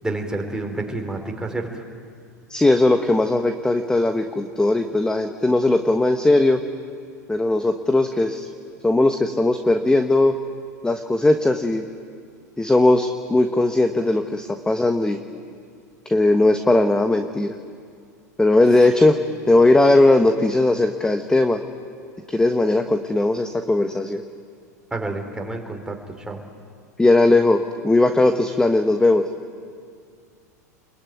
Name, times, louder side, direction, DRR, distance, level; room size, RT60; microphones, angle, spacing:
voice 1, 0.0-1.8 24.9-26.4, right 2 dB, 10° right, 2 dB, 4.2 m, -29 dB
voice 2, 2.5-6.6 7.3-8.5 8.8-10.3 10.8-11.8 12.6-15.2 16.0-17.6 18.4-19.2 19.5-21.6 22.3-24.2 27.0-29.2, left 2 dB, 10° left, 7 dB, 1.3 m, -18 dB
27.5 x 22.0 x 9.4 m, 2.2 s
hypercardioid pair, 90°, 9 cm